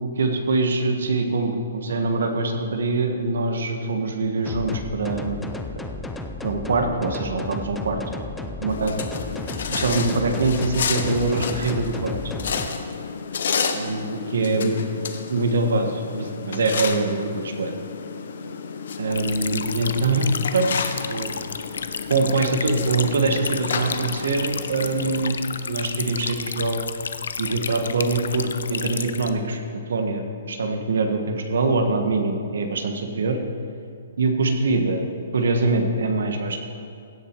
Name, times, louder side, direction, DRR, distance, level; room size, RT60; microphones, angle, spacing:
voice 1, 0.0-5.8 6.4-8.0 8.6-9.0 9.7-12.2 13.7-14.8 15.3-17.7 19.0-21.3 22.1-25.4 25.7-26.8 27.4-33.4 34.2-35.0 35.3-36.6, right 3 dB, 70° right, 5 dB, 1.5 m, -24 dB
sound 1, 4.5-12.7, left 2 dB, 5° left, 0.4 m, -34 dB
sound 2, 8.7-25.3, left 6 dB, 55° left, 0.9 m, -31 dB
sound 3, 19.1-29.3, left 5 dB, 90° left, 0.7 m, -32 dB
16.5 x 7.4 x 4.7 m, 2.4 s
hypercardioid pair, 180°, 0 cm